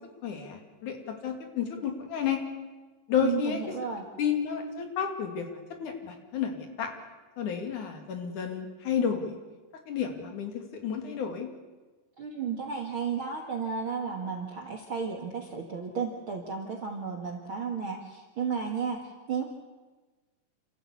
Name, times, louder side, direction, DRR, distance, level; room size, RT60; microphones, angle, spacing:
voice 1, 0.2-2.4 3.1-3.6 4.2-6.9 7.4-9.4 9.9-11.5, left 7 dB, 65° left, 4 dB, 3.8 m, -31 dB
voice 2, 3.2-4.0 12.2-19.4, right 6 dB, 45° right, 1 dB, 2.1 m, -33 dB
28.0 x 14.0 x 8.5 m, 1.3 s
omnidirectional pair, 3.9 m